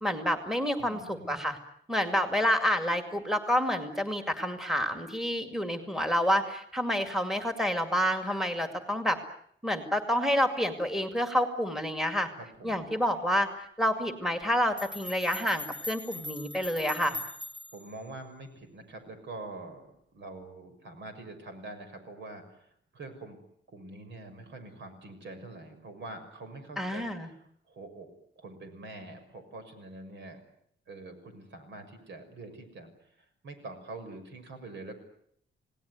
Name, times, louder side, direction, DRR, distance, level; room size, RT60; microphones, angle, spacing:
voice 1, 0.0-1.6 1.9-9.2 9.6-12.3 12.6-13.5 13.8-17.2 26.8-27.3, equal, ahead, 6 dB, 2.3 m, -28 dB
voice 2, 0.8-1.4 12.4-12.8 17.7-23.4 23.7-28.1 28.4-30.4 30.9-32.9 33.4-35.0, right 2 dB, 75° right, 7 dB, 6.4 m, -45 dB
sound 1, 14.4-14.5 14.8-17.9, left 2 dB, 25° right, 2.2 m, -41 dB
29.5 x 18.5 x 9.5 m, 0.69 s
wide cardioid pair, 165°, 19 cm